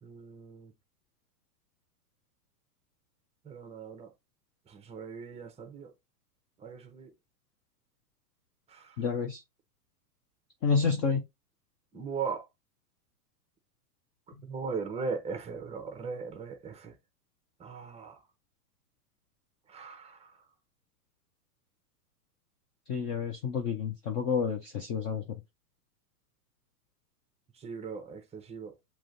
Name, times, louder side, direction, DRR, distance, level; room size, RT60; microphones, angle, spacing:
voice 1, 0.0-0.7 3.4-4.1 4.7-5.9 6.6-7.1 8.7-9.0 11.9-12.5 14.4-16.9 17.6-18.2 19.7-20.4 27.5-28.7, right 5 dB, 15° right, 0.7 m, -39 dB
voice 2, 9.0-9.4 10.6-11.2 22.9-25.2, left 5 dB, 25° left, 0.4 m, -29 dB
7.4 x 2.9 x 2.5 m
hypercardioid pair, 110°, 46 cm